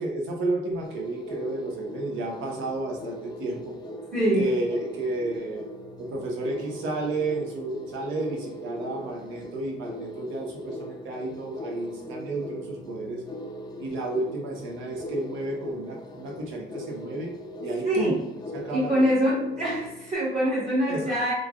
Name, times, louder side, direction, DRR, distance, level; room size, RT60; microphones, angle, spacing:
voice 1, 0.0-3.8 4.4-5.6 6.0-13.2 13.8-17.3 17.6-18.2 18.5-19.1 20.9-21.1, right 2 dB, 90° right, 0 dB, 0.7 m, -31 dB
sound 1, 0.7-20.1, equal, 20° left, 0.4 m, -40 dB
voice 2, 4.1-4.5 17.8-18.1 18.7-21.3, equal, 35° right, -6 dB, 0.9 m, -24 dB
3.1 x 2.4 x 2.3 m, 0.92 s
cardioid pair, 90°, 20 cm